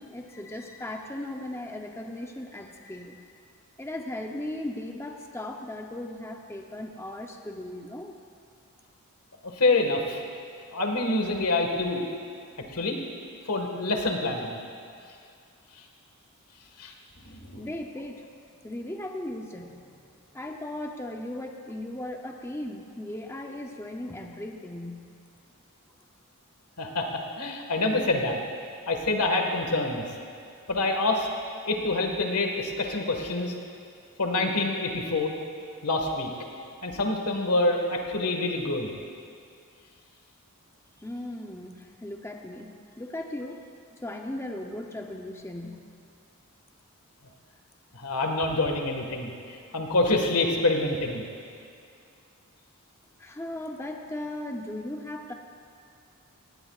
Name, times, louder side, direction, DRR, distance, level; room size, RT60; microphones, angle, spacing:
voice 1, 0.0-3.2 3.8-8.2 17.6-18.3 18.6-20.0 20.3-25.1 41.0-43.7 44.0-45.9 53.2-55.3, left 1 dB, 10° left, 2 dB, 0.6 m, -37 dB
voice 2, 9.6-10.2 10.7-12.0 12.7-13.0 13.5-14.6 16.8-16.9 17.2-17.7 26.8-28.4 28.9-30.0 30.7-31.3 31.6-33.5 34.2-35.3 35.8-36.3 36.8-38.9 47.9-49.3 49.7-51.2, left 2 dB, 85° left, 2 dB, 1.6 m, -26 dB
19.0 x 18.0 x 2.4 m, 2.4 s
head